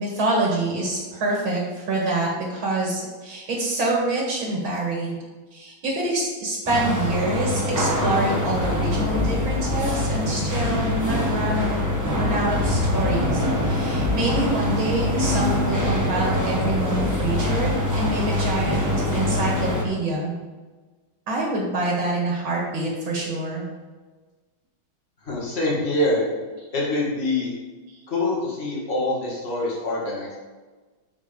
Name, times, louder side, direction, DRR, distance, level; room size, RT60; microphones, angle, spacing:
voice 1, 0.0-5.2 5.5-11.7 12.2-20.4 21.3-23.6 27.9-28.0, right 2 dB, 75° right, -3 dB, 2.5 m, -26 dB
sound 1, 6.7-19.8, left 1 dB, 10° right, 1.2 m, -24 dB
voice 2, 25.2-26.2 26.7-27.5 28.1-30.4, left 2 dB, 30° left, -5 dB, 2.4 m, -25 dB
6.6 x 6.1 x 5.2 m, 1.3 s
omnidirectional pair, 2.2 m